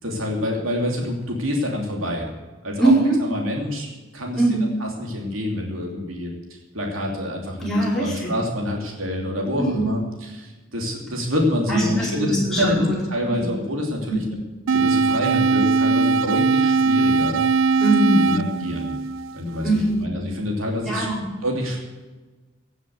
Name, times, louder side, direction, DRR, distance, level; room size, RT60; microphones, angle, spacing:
voice 1, 0.0-2.3 2.6-2.9 3.2-3.9 4.1-4.4 4.8-14.2 14.7-17.4 18.1-18.9 19.3-21.1 21.4-21.8, left 1 dB, 90° right, 0 dB, 3.0 m, -27 dB
voice 2, 2.8-3.2 4.4-4.7 7.6-8.3 9.6-9.9 11.7-12.9 13.3-13.5 14.1-14.2 17.8-18.4 19.6-20.1 20.8-21.2, right 1 dB, ahead, -7 dB, 5.3 m, -21 dB
sound 1, 14.7-19.7, right 4 dB, 70° right, 0.4 m, -20 dB
16.5 x 7.4 x 7.9 m, 1.2 s
head